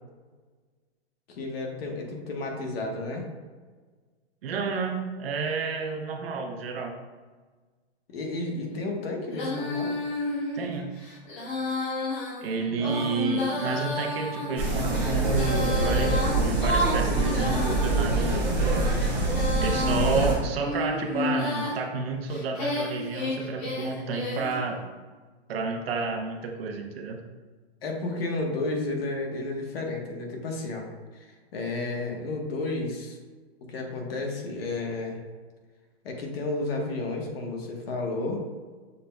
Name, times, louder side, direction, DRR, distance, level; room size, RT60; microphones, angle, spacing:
voice 1, 1.3-3.3 8.1-10.0 12.7-13.1 19.7-20.2 27.8-33.2 33.7-35.2 36.0-38.4, left 2 dB, 65° left, 1 dB, 1.1 m, -32 dB
voice 2, 4.4-7.0 10.5-10.9 12.4-19.0 19.6-24.8 25.5-27.2, right 4 dB, 65° right, 3 dB, 0.8 m, -30 dB
Female singing, 9.3-18.2 18.8-21.8 22.3-24.6, left 2 dB, 50° left, 1.4 m, -31 dB
sound 1, 14.6-20.3, right 2 dB, 5° right, 0.5 m, -25 dB
6.6 x 3.3 x 2.2 m, 1.4 s
supercardioid pair, 165°, 32 cm